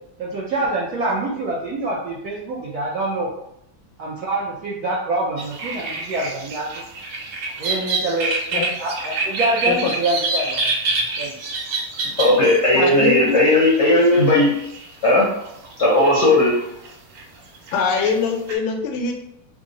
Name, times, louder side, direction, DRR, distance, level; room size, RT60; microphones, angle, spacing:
voice 1, 0.2-3.3 4.0-6.7 7.6-8.3 8.8-11.3, right 2 dB, 70° right, -5 dB, 0.9 m, -25 dB
sound 1, 5.4-15.7 16.0-17.2 17.5-18.6, right 3 dB, 85° right, 1.6 m, -27 dB
voice 2, 12.2-14.5 15.0-15.3 15.8-16.5, left 1 dB, 55° left, -6 dB, 0.7 m, -15 dB
voice 3, 12.7-13.4 17.7-19.1, left 5 dB, 80° left, 3 dB, 1.4 m, -22 dB
3.6 x 2.0 x 3.8 m, 0.78 s
omnidirectional pair, 2.2 m